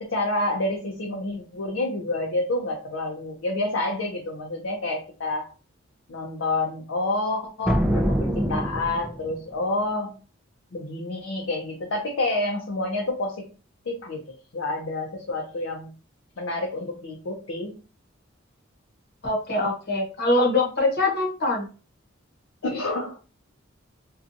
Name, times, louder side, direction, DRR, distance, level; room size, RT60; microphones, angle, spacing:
voice 1, 0.0-5.5 6.1-10.1 10.7-13.4 13.9-14.2 14.5-15.9 16.4-17.7 22.6-23.1, left 2 dB, 70° left, 0 dB, 0.6 m, -28 dB
sound 1, 7.6-9.4, equal, 5° right, 0.3 m, -24 dB
voice 2, 19.2-21.7, left 2 dB, 55° left, 1 dB, 0.9 m, -23 dB
2.6 x 2.3 x 2.5 m, 0.35 s
head